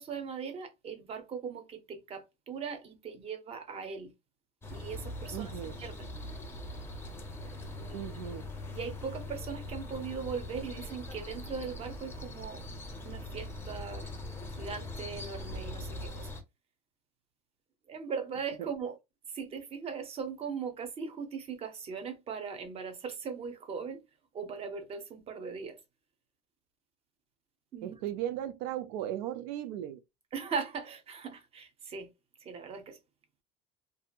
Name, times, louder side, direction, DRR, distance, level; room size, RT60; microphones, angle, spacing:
voice 1, 0.0-4.1 4.7-5.5 5.8-6.1 7.8-8.1 8.7-12.6 13.0-14.1 14.5-16.3 17.9-19.0 19.3-24.0 24.3-25.8 27.7-28.0 30.3-32.1 32.4-33.0, right 6 dB, 30° right, 0.7 m, -39 dB
sound 1, 4.6-16.4, left 1 dB, 10° left, 0.6 m, -41 dB
voice 2, 5.3-5.8 7.9-8.5 18.6-18.7 27.8-30.0, right 11 dB, 85° right, 0.4 m, -36 dB
2.7 x 2.5 x 2.2 m
cardioid pair, 135°, 21 cm